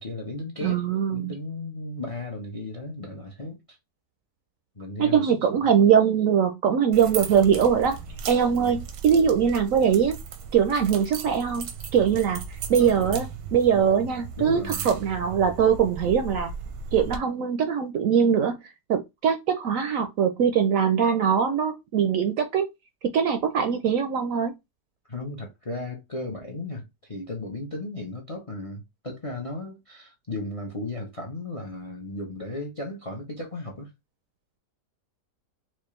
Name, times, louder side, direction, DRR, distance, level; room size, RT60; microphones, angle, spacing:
voice 1, 0.0-0.8 1.1-3.8 4.8-5.4 8.5-8.8 12.7-13.2 14.4-14.9 25.1-33.9, left 2 dB, 60° left, 0.3 m, -35 dB
voice 2, 0.6-1.3 5.0-8.0 8.3-10.2 10.5-12.4 12.7-16.5 16.9-18.6 18.9-22.7 23.1-24.5, right 7 dB, 70° right, 0.8 m, -22 dB
sound 1, 6.9-17.2, right 6 dB, 85° right, 1.3 m, -37 dB
4.4 x 2.4 x 3.1 m
omnidirectional pair, 1.8 m